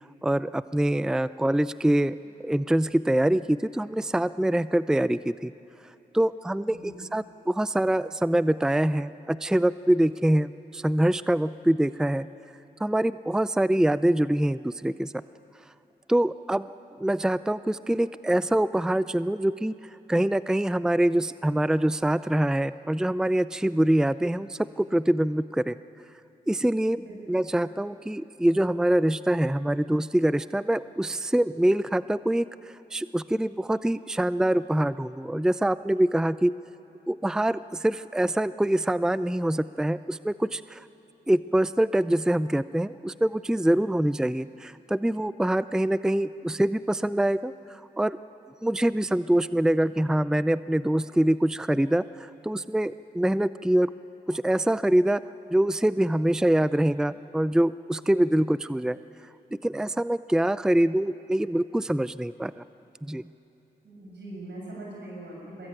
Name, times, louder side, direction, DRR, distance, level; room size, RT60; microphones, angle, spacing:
voice 1, 0.2-2.2 2.4-5.5 6.1-12.3 12.8-15.1 16.1-16.7 17.0-19.7 20.1-25.8 26.5-27.0 27.3-36.5 37.1-40.8 41.3-48.2 48.6-53.9 54.3-55.2 55.5-59.0 59.6-62.6 63.0-63.2, right 1 dB, 5° right, 15 dB, 0.5 m, -24 dB
voice 2, 6.7-7.0 27.0-27.4 63.8-65.7, right 1 dB, 85° right, -3 dB, 7.3 m, -41 dB
22.5 x 20.5 x 9.0 m, 2.9 s
cardioid pair, 40°, 18 cm